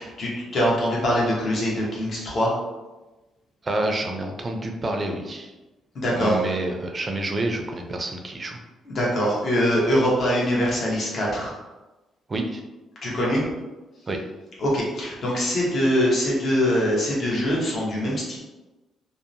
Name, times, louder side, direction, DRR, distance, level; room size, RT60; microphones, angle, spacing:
voice 1, 0.0-2.5 5.9-6.4 8.9-11.5 13.0-13.5 14.6-18.4, equal, 50° left, -5 dB, 0.9 m, -23 dB
voice 2, 3.6-5.5 6.2-8.6 12.3-12.6 14.1-14.2, right 2 dB, 30° right, 3 dB, 0.4 m, -28 dB
2.7 x 2.0 x 2.5 m, 1.1 s
cardioid pair, 90°, 0 cm